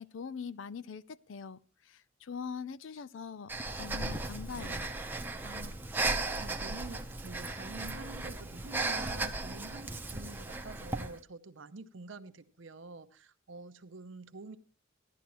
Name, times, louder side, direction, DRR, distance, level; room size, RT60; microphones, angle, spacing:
voice 1, 0.0-3.5 3.8-4.9, left 6 dB, 75° left, 0.5 m, -42 dB
Breathing, 3.5-11.2, right 2 dB, 10° right, 0.8 m, -36 dB
voice 2, 5.4-14.6, right 3 dB, 75° right, 0.7 m, -48 dB
15.5 x 11.5 x 3.0 m
head